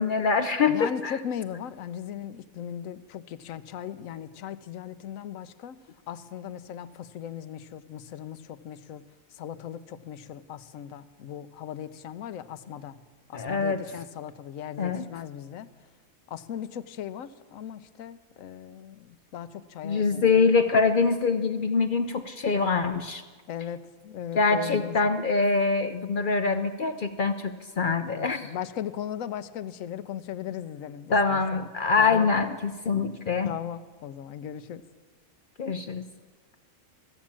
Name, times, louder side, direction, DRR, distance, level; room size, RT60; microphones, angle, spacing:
voice 1, 0.0-1.1 13.3-13.8 14.8-15.1 19.8-23.2 24.3-28.5 31.1-33.5 35.6-36.0, left 4 dB, 60° left, 9 dB, 0.5 m, -24 dB
voice 2, 0.7-5.8 6.1-9.0 9.3-13.0 13.3-15.7 16.3-20.5 23.5-25.0 28.1-32.3 33.4-34.8, left 9 dB, 75° left, 13 dB, 1.0 m, -38 dB
15.0 x 7.2 x 8.7 m, 1.4 s
omnidirectional pair, 1.4 m